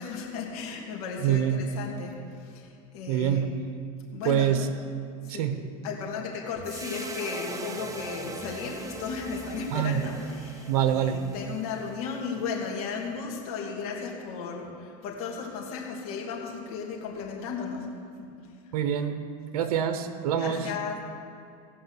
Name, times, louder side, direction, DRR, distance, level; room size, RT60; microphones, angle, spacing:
voice 1, 0.0-3.5 4.1-4.7 5.2-5.5 5.8-17.9 18.2-18.3 20.3-21.0, left 5 dB, 65° left, -2 dB, 2.7 m, -35 dB
voice 2, 1.2-1.6 3.1-3.5 4.2-4.7 5.3-5.6 9.7-10.0 10.7-11.2 18.7-19.2 19.5-20.7, right 10 dB, 75° right, 9 dB, 1.0 m, -25 dB
sound 1, 6.6-13.0, right 3 dB, 15° right, 0.9 m, -42 dB
16.5 x 5.6 x 8.1 m, 2.3 s
supercardioid pair, 125°, 19 cm